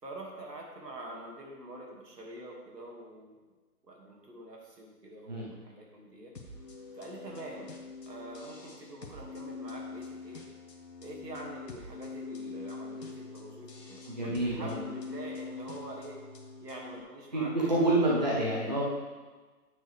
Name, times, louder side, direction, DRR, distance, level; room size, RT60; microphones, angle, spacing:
voice 1, 0.0-3.4 3.8-6.4 7.0-7.7 8.1-10.5 11.0-16.2 16.6-18.4, right 1 dB, 85° right, -1 dB, 2.5 m, -45 dB
sound 1, 6.4-17.0, left 4 dB, 85° left, 1.6 m, -44 dB
voice 2, 14.1-14.8 17.3-18.8, right 1 dB, 25° right, -5 dB, 1.0 m, -28 dB
9.1 x 6.4 x 3.5 m, 1.3 s
hypercardioid pair, 175°, 47 cm